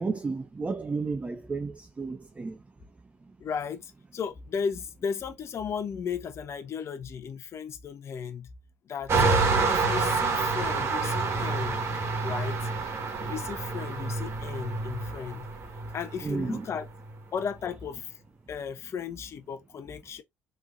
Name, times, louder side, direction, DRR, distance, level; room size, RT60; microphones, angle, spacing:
voice 1, 0.0-2.6 16.2-16.7, right 4 dB, 20° right, 0.4 m, -32 dB
voice 2, 3.4-8.5 8.9-9.1 9.7-11.9 12.2-12.7 13.2-15.5 15.8-16.9 17.3-18.1 18.5-20.2, left 6 dB, 50° left, 0.7 m, -35 dB
sound 1, 9.1-17.1, right 4 dB, 45° right, 1.4 m, -28 dB
3.5 x 3.2 x 2.5 m
supercardioid pair, 70°, 6 cm